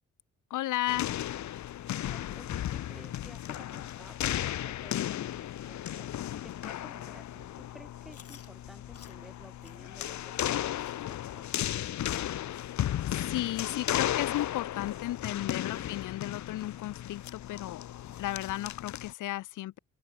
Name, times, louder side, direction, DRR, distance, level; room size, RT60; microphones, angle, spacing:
voice 1, 0.5-1.1 13.1-17.8 18.2-19.8, left 15 dB, 85° left, 2.1 m, -34 dB
sound 1, 0.9-19.1, left 12 dB, 70° left, 1.7 m, -35 dB
voice 2, 2.0-6.1 6.4-11.7 15.3-15.9, equal, ahead, 6.1 m, -54 dB
Chewing mastication, 8.1-8.5 8.9-9.2 9.6-9.8 10.2-10.3 10.8-11.0 11.5-11.6 12.1-12.3 12.8-12.9 13.5-13.6 14.1-14.2 14.8-14.9, left 7 dB, 50° left, 7.3 m, -54 dB
open air
cardioid pair, 90°, 30 cm